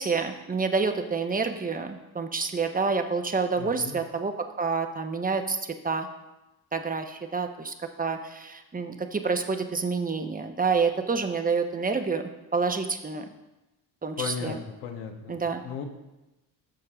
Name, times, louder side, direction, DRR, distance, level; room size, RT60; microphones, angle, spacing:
voice 1, 0.0-5.6 5.8-6.1 6.7-12.2 12.5-13.3 14.0-14.6 15.3-15.6, right 4 dB, 20° right, 6 dB, 0.9 m, -28 dB
voice 2, 3.6-4.0 14.2-15.4 15.6-15.9, left 6 dB, 90° left, 3 dB, 1.1 m, -35 dB
13.0 x 6.4 x 2.4 m, 0.99 s
supercardioid pair, 60°, 45 cm